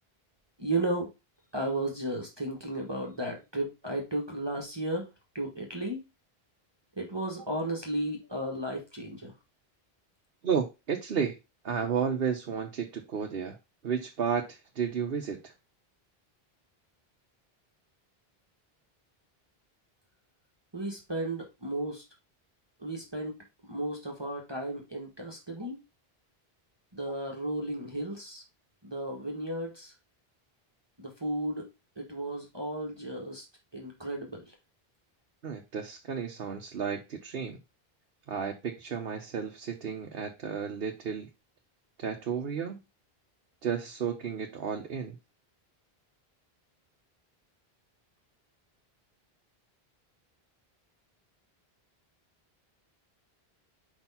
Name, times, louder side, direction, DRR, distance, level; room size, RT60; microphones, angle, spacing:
voice 1, 0.6-1.1 1.5-5.1 5.3-6.1 7.0-9.3 20.7-22.0 22.8-23.3 23.6-25.8 26.9-28.4 28.8-29.9 31.0-31.7 32.0-33.4 33.7-34.5, right 1 dB, 25° right, 0 dB, 1.4 m, -34 dB
voice 2, 10.4-11.4 11.6-13.6 13.8-15.5 35.4-37.6 38.3-41.3 42.0-42.8 43.6-45.2, right 7 dB, 70° right, 3 dB, 1.1 m, -32 dB
5.0 x 4.4 x 5.5 m, 0.26 s
omnidirectional pair, 1.0 m